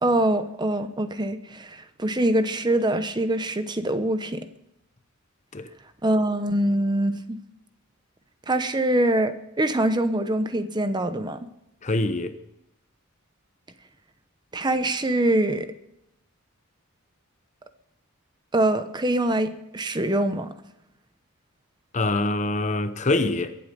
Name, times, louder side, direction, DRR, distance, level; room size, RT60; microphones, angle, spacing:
voice 1, 0.0-4.4 6.0-7.4 8.5-11.4 14.5-15.7 18.5-20.5, right 1 dB, 20° right, 0.8 m, -24 dB
voice 2, 11.8-12.4 21.9-23.6, left 2 dB, 35° left, 0.8 m, -24 dB
23.0 x 8.4 x 5.3 m
head